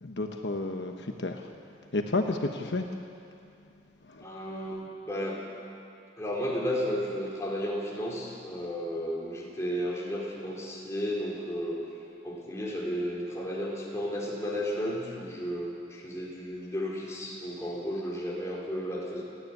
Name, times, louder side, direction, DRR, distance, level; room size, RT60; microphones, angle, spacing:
voice 1, 0.0-1.4 1.9-2.9 4.1-4.2, left 2 dB, 70° left, 4 dB, 1.1 m, -31 dB
voice 2, 4.2-5.4 6.2-11.8 12.2-19.2, equal, 15° left, -4 dB, 4.1 m, -33 dB
29.0 x 10.0 x 9.6 m, 2.5 s
head